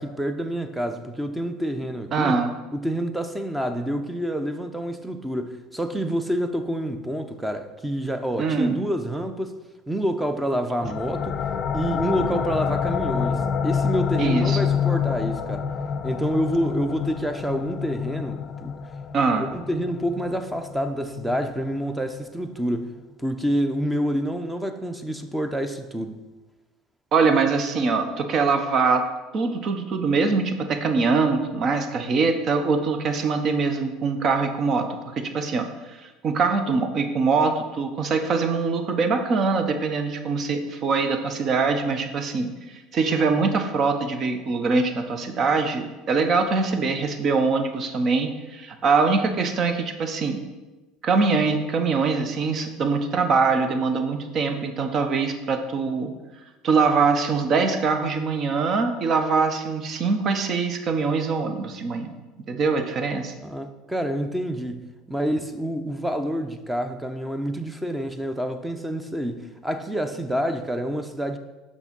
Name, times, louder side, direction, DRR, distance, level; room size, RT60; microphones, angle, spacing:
voice 1, 0.0-2.4 2.7-9.5 9.9-11.4 11.7-15.7 16.0-18.7 19.4-22.9 23.2-26.2 63.4-71.4, equal, 5° right, 0.7 m, -28 dB
voice 2, 2.1-2.5 8.4-8.8 14.2-14.6 19.1-19.5 27.1-50.4 51.0-56.1 56.6-62.1 62.5-63.3, right 4 dB, 45° right, 0.9 m, -23 dB
sound 1, 10.8-22.2, left 7 dB, 40° left, 0.7 m, -28 dB
6.0 x 5.4 x 5.3 m
hypercardioid pair, 80°, 0 cm